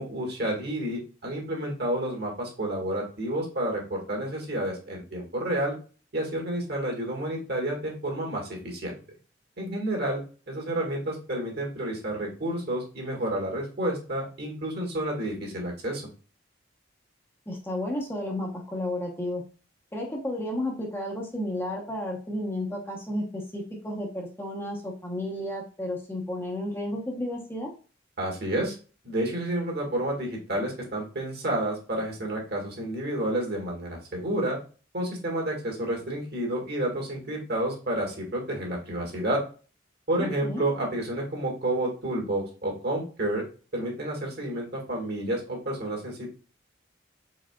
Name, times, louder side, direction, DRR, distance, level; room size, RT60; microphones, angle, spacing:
voice 1, 0.0-5.7 6.1-8.9 9.6-10.2 10.5-16.0 28.2-28.7 29.0-34.6 34.9-39.4 40.1-43.4 43.7-46.3, right 1 dB, 55° right, -1 dB, 1.9 m, -30 dB
voice 2, 17.5-19.4 19.9-27.7 40.2-40.6, left 1 dB, 10° left, -1 dB, 0.9 m, -32 dB
4.9 x 4.1 x 2.3 m, 0.37 s
head